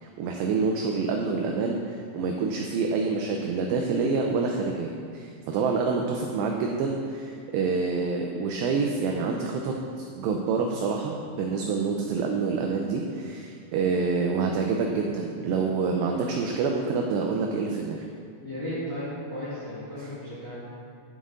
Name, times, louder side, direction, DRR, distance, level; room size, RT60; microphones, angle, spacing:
voice 1, 0.0-9.7 10.1-18.0 20.0-20.1, right 4 dB, 90° right, 1 dB, 2.4 m, -27 dB
voice 2, 18.4-20.6, equal, 35° left, -10 dB, 1.3 m, -35 dB
9.5 x 7.3 x 3.7 m, 2.2 s
omnidirectional pair, 5.5 m